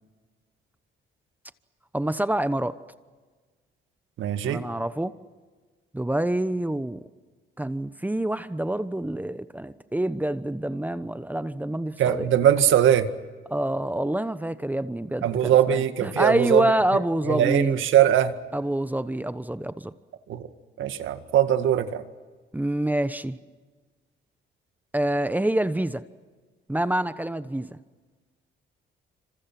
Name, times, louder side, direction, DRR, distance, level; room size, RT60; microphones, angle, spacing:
voice 1, 1.9-2.7 4.4-5.1 5.9-7.0 7.6-12.3 13.5-17.8 18.5-19.9 22.5-23.4 24.9-26.0 26.7-27.8, right 1 dB, 10° right, 12 dB, 1.1 m, -27 dB
voice 2, 4.2-4.6 12.0-13.1 15.2-16.7 17.3-18.3 20.3-20.4 20.8-22.0, right 10 dB, 80° right, 9 dB, 1.9 m, -21 dB
28.0 x 26.5 x 6.1 m, 1.4 s
cardioid pair, 90°, 20 cm